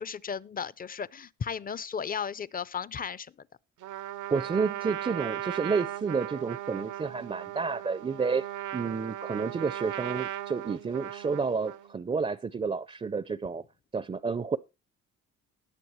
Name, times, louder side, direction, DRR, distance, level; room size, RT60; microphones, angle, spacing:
voice 1, 0.0-3.3, left 7 dB, 30° left, 0.5 m, -35 dB
Trumpet, 3.8-11.9, right 13 dB, 80° right, 0.8 m, -37 dB
voice 2, 4.3-13.6 13.9-14.6, right 5 dB, 20° right, 0.5 m, -30 dB
19.5 x 7.0 x 3.1 m
cardioid pair, 90°, 30 cm